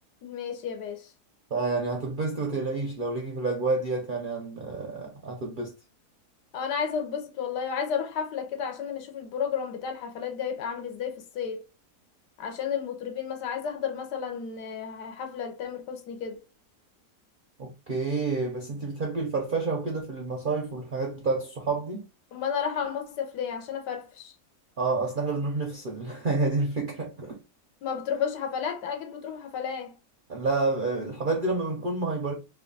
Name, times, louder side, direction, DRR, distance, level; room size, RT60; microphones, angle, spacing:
voice 1, 0.2-1.1 6.5-11.6 12.4-16.4 22.3-24.3 27.8-29.9, left 7 dB, 80° left, 1.4 m, -32 dB
voice 2, 1.5-5.7 17.6-22.1 24.8-27.4 30.3-32.3, right 3 dB, 65° right, 0.5 m, -29 dB
3.1 x 2.3 x 3.8 m
omnidirectional pair, 1.8 m